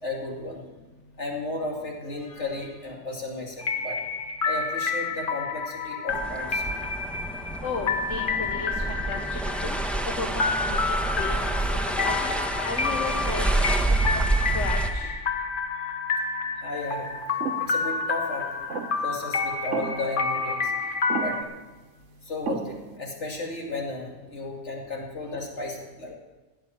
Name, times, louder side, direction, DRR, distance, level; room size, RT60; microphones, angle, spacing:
voice 1, 0.0-0.6 1.2-4.0 4.4-6.8 16.6-17.1 17.6-18.5 19.0-20.7 21.2-21.4 22.2-26.1, left 2 dB, 70° left, -1 dB, 3.0 m, -34 dB
sound 1, 3.6-21.4, left 4 dB, 45° left, 1.1 m, -29 dB
sound 2, 6.1-14.9, right 2 dB, ahead, 1.1 m, -28 dB
voice 2, 7.6-9.8 10.1-15.2, left 3 dB, 90° left, 1 dB, 1.6 m, -35 dB
sound 3, 17.4-17.7 18.7-19.1 19.7-20.2 21.1-21.6 22.5-23.0, right 6 dB, 80° right, 1.3 m, -33 dB
16.0 x 9.1 x 7.3 m, 1.2 s
omnidirectional pair, 1.2 m